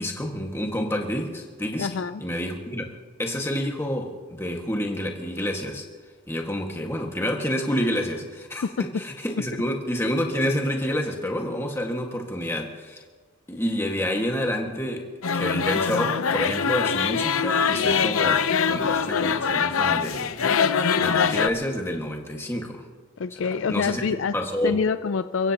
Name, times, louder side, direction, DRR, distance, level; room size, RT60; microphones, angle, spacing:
voice 1, 0.0-1.9 2.2-2.9 3.2-5.8 6.3-13.0 13.5-15.1 15.3-20.3 21.0-22.8 23.4-24.0 24.3-24.8, equal, 10° left, 1 dB, 1.7 m, -28 dB
voice 2, 1.8-2.2 23.2-24.3 24.6-25.5, left 5 dB, 65° left, 12 dB, 0.4 m, -26 dB
sound 1, 15.2-21.5, left 6 dB, 85° left, 0.7 m, -23 dB
29.5 x 16.0 x 2.9 m, 1.4 s
head